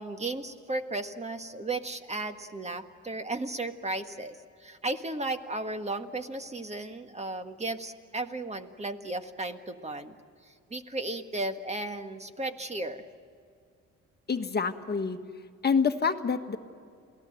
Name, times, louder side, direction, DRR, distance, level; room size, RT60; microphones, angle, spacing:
voice 1, 0.0-10.2 10.4-13.1, right 2 dB, 20° right, 8 dB, 1.7 m, -35 dB
voice 2, 14.3-15.2 15.6-16.6, left 5 dB, 35° left, 7 dB, 1.5 m, -27 dB
28.0 x 18.0 x 7.8 m, 2.2 s
cardioid pair, 90°, 30 cm